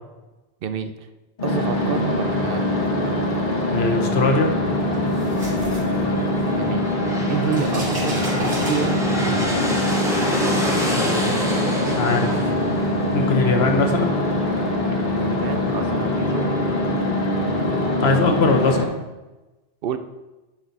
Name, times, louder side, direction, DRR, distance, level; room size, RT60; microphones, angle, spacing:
voice 1, 0.6-0.9 1.4-2.7 5.6-6.9 7.3-9.6 15.1-16.6 18.0-18.2 19.8-20.0, right 7 dB, 60° right, 10 dB, 0.7 m, -29 dB
sound 1, 1.4-18.8, left 1 dB, 45° left, 1.4 m, -23 dB
voice 2, 3.7-4.5 10.9-11.3 11.8-12.8 13.1-14.1 18.0-19.0, left 4 dB, 70° left, 4 dB, 1.2 m, -21 dB
sound 2, 4.9-6.6 6.9-9.3, right 1 dB, 40° right, 3.1 m, -34 dB
sound 3, 6.7-14.4, equal, 5° right, 1.2 m, -28 dB
10.0 x 4.9 x 4.0 m, 1.1 s
omnidirectional pair, 1.1 m